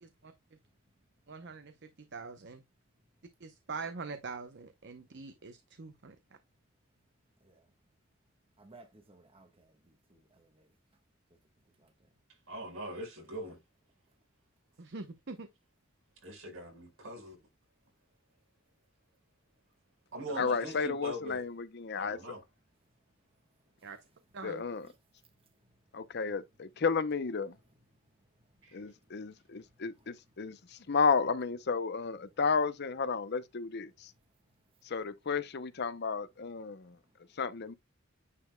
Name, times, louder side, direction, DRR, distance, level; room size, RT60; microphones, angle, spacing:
voice 1, 0.0-0.3 1.3-2.6 3.4-6.2 14.8-15.5 20.3-20.5 23.8-24.0 24.3-24.6, right 4 dB, 55° right, 0.7 m, -44 dB
voice 2, 0.8-1.2 7.4-7.7 8.6-10.8 11.3-11.4 11.8-12.1 22.9-23.9 24.8-26.2 27.6-30.9 34.0-34.9 36.6-37.4, right 2 dB, 25° right, 1.2 m, -64 dB
voice 3, 12.5-13.6 16.2-17.4 20.1-21.4 22.0-22.4 28.6-28.8, right 1 dB, 75° right, 4.8 m, -42 dB
voice 4, 20.4-22.2 24.4-24.9 25.9-27.5 28.7-34.1 34.8-37.0 37.4-37.7, left 5 dB, 55° left, 0.6 m, -32 dB
9.7 x 5.1 x 2.2 m
head